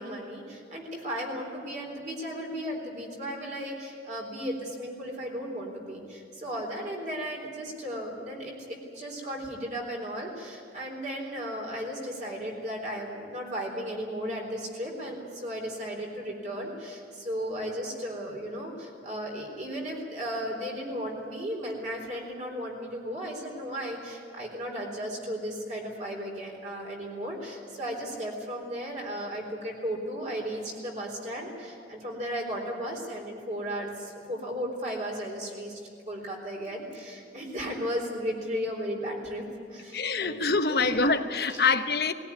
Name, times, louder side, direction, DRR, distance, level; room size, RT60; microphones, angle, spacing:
voice 1, 0.0-35.8 36.1-39.4 39.7-40.3 40.7-41.1 41.5-41.6, equal, 40° right, 4.0 m, -35 dB
voice 2, 39.9-42.1, left 4 dB, 60° left, 1.1 m, -25 dB
19.5 x 17.5 x 9.6 m
head